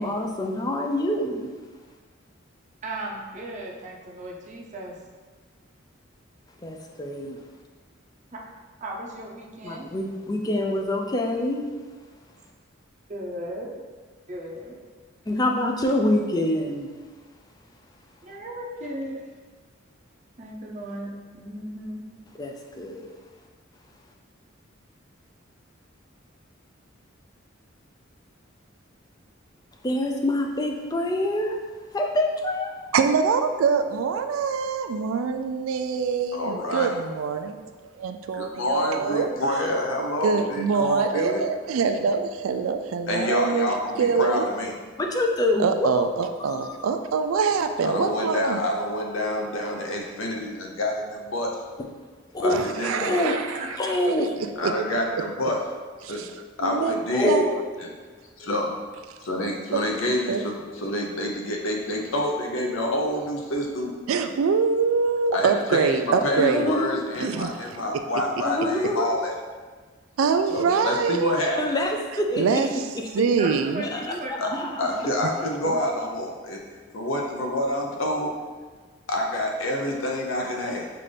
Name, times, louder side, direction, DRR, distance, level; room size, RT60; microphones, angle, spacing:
voice 1, 0.0-1.5 6.6-7.4 9.6-11.7 15.3-16.9 22.4-23.1 29.8-31.6 31.9-32.7 45.0-45.9 46.4-46.9 52.3-52.6 53.0-53.3 53.8-54.3 57.1-57.5 66.4-67.0 68.4-69.1 71.6-72.6 73.0-73.1 73.8-74.9, left 1 dB, 20° left, 1 dB, 0.4 m, -26 dB
voice 2, 2.8-5.0 8.3-8.5 8.8-9.9 13.1-13.7 14.3-14.8 18.2-19.2 20.4-22.0 53.2-54.0 73.2-75.1 75.7-75.8, right 1 dB, 35° right, -2 dB, 0.6 m, -36 dB
voice 3, 32.9-37.6 38.0-39.3 40.2-43.7 44.0-44.4 45.6-48.6 52.5-53.6 54.2-54.3 54.6-54.7 56.0-56.3 56.6-57.0 57.3-57.6 59.7-59.8 60.3-60.4 64.1-66.7 67.2-67.5 70.2-71.4 72.4-72.9 73.1-73.8, right 5 dB, 85° right, 7 dB, 0.3 m, -24 dB
voice 4, 36.3-36.9 38.3-41.4 43.1-44.7 47.8-51.5 52.4-53.2 54.6-55.6 56.1-56.2 56.6-57.4 57.8-57.9 58.4-58.7 59.2-63.9 65.3-69.3 70.5-71.6 74.4-74.5 74.8-76.6 76.9-78.3 79.1-80.9, left 1 dB, 80° left, 0 dB, 0.7 m, -27 dB
5.7 x 2.5 x 3.3 m, 1.4 s
head